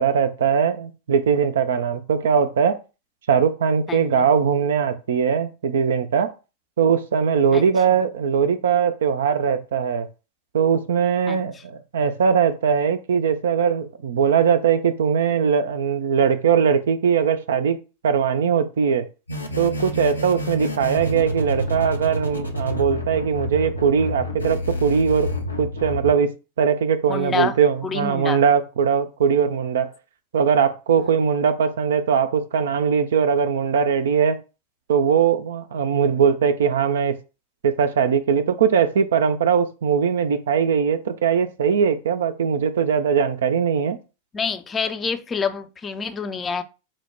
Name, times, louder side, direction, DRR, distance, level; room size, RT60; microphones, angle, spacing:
voice 1, 0.0-2.8 3.3-6.3 6.8-10.1 10.5-19.1 19.6-25.3 25.6-29.9 30.3-34.4 34.9-37.2 37.6-44.0, right 7 dB, 60° right, 0.4 m, -20 dB
voice 2, 3.9-4.2 7.5-7.6 11.3-11.4 27.1-27.6 27.8-28.4 31.0-31.1 44.3-46.6, left 5 dB, 20° left, 0.5 m, -27 dB
sound 1, 19.3-26.1, left 1 dB, 85° left, 0.7 m, -28 dB
4.5 x 2.1 x 4.4 m
figure-of-eight pair, 90°, 0 cm